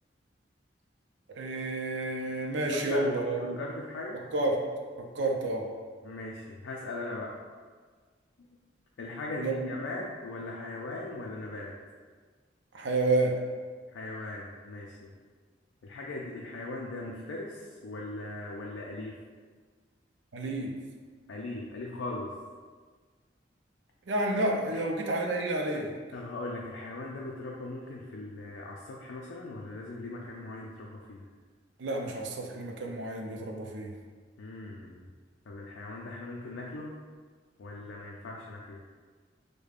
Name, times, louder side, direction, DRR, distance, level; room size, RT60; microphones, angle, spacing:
voice 1, 1.3-3.6 4.1-4.6 5.0-5.7 9.4-9.7 12.7-13.4 20.3-20.8 24.1-25.9 31.8-34.0, right 2 dB, 70° right, 1 dB, 0.5 m, -30 dB
voice 2, 2.7-3.0 3.6-4.2 6.0-7.4 9.0-11.7 13.9-15.1 15.8-19.2 21.3-22.3 24.7-24.8 26.1-31.2 34.4-35.1 35.5-36.9 37.6-38.8, left 2 dB, 80° left, -2 dB, 0.4 m, -39 dB
4.8 x 2.1 x 2.4 m, 1.5 s
head